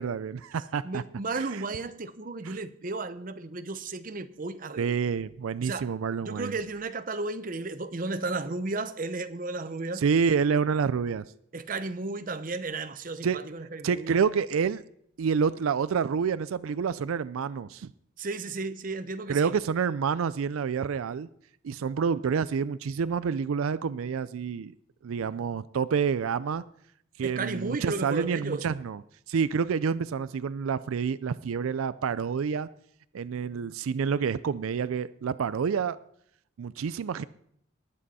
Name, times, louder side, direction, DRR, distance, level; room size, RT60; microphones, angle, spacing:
voice 1, 0.0-1.0 1.3-1.6 2.4-2.6 4.8-6.6 9.9-11.2 13.2-13.4 13.8-14.8 15.2-17.9 19.3-21.3 21.6-24.7 25.0-26.6 27.2-29.0 29.3-32.7 33.1-36.0 36.6-37.2, right 6 dB, 80° right, 0.4 m, -28 dB
voice 2, 0.8-5.0 5.6-5.9 6.2-10.0 11.5-14.2 18.2-19.5 27.2-28.7, right 3 dB, 40° right, 0.7 m, -34 dB
19.5 x 7.6 x 4.2 m
head